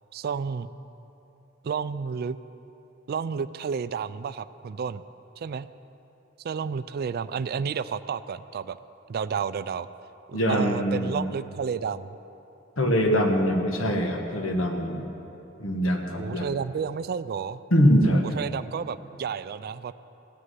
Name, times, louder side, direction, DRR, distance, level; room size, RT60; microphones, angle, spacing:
voice 1, 0.1-0.7 1.6-2.4 3.1-5.0 5.4-5.7 6.4-8.8 9.1-9.9 10.3-12.2 16.2-17.6 18.3-19.9, right 6 dB, 50° right, 14 dB, 0.3 m, -31 dB
voice 2, 10.3-11.2 12.8-15.0 15.6-16.5 17.7-18.3, equal, 70° left, 3 dB, 1.5 m, -23 dB
16.5 x 6.5 x 9.2 m, 3.0 s
head